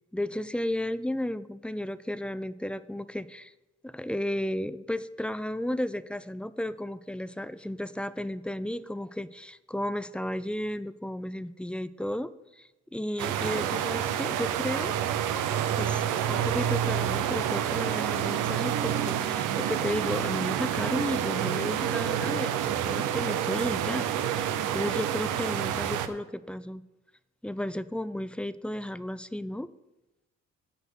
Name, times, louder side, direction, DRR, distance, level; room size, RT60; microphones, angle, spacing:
voice 1, 0.1-3.5 3.8-15.0 15.8-26.8 27.4-29.7, left 1 dB, 5° left, 15 dB, 0.4 m, -33 dB
sound 1, 13.2-26.1, right 10 dB, 85° right, 0.8 m, -28 dB
10.0 x 5.2 x 8.3 m, 1.0 s
cardioid pair, 90°, 30 cm